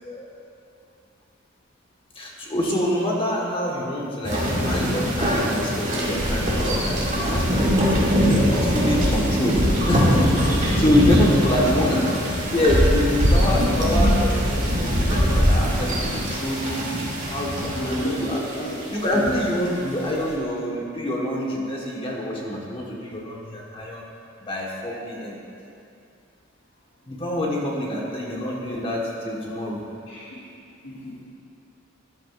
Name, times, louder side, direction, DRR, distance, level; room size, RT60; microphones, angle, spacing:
voice 1, 2.1-7.0 7.2-9.6 9.9-12.0 12.5-16.8 17.2-18.4 18.9-24.0 24.4-25.4 27.1-29.8, left 1 dB, 25° left, -3 dB, 1.4 m, -25 dB
sound 1, 4.2-19.7, equal, 40° right, 2.3 m, -22 dB
voice 2, 11.2-12.1 17.7-18.8 19.1-19.7 30.1-30.3 30.8-31.2, equal, 65° left, -10 dB, 2.1 m, -32 dB
13.5 x 11.5 x 2.5 m, 2.5 s
head